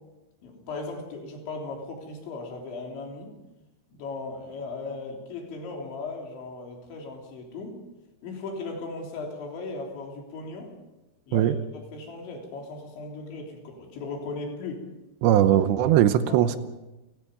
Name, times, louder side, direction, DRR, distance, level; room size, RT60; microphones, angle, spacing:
voice 1, 0.4-3.4 3.9-7.8 8.2-10.7 11.3-14.9 16.3-16.6, left 3 dB, 85° left, 1 dB, 5.9 m, -37 dB
voice 2, 15.2-16.6, right 11 dB, 80° right, 11 dB, 3.1 m, -20 dB
29.5 x 18.0 x 5.2 m, 1.0 s
omnidirectional pair, 5.1 m